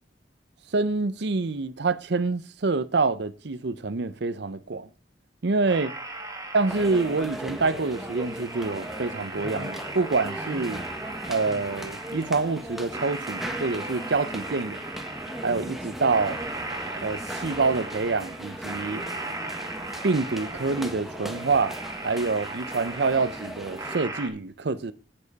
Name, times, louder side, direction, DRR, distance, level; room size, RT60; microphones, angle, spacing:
voice 1, 0.7-4.9 5.4-5.9 6.5-10.8 11.3-14.8 15.4-16.4 17.0-19.0 20.0-21.7 22.0-24.9, right 3 dB, 65° right, 0.7 m, -26 dB
sound 1, 5.7-24.3, right 2 dB, 20° right, 2.0 m, -38 dB
sound 2, 6.7-24.0, right 1 dB, ahead, 1.5 m, -38 dB
9.8 x 8.9 x 4.1 m
head